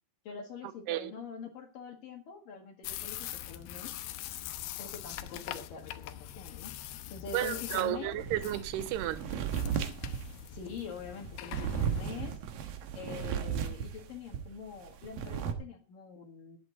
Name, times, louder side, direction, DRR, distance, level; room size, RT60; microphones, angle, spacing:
voice 1, 0.2-4.0 4.8-6.7 7.1-8.1 10.5-12.4 12.9-16.6, left 6 dB, 60° left, 3.1 m, -44 dB
sound 1, 2.8-12.4, left 13 dB, 80° left, 2.9 m, -43 dB
voice 2, 7.3-9.2, right 13 dB, 85° right, 2.9 m, -32 dB
sound 2, 8.2-14.5 14.8-15.5, right 8 dB, 65° right, 2.7 m, -35 dB
15.0 x 11.0 x 3.9 m
omnidirectional pair, 4.7 m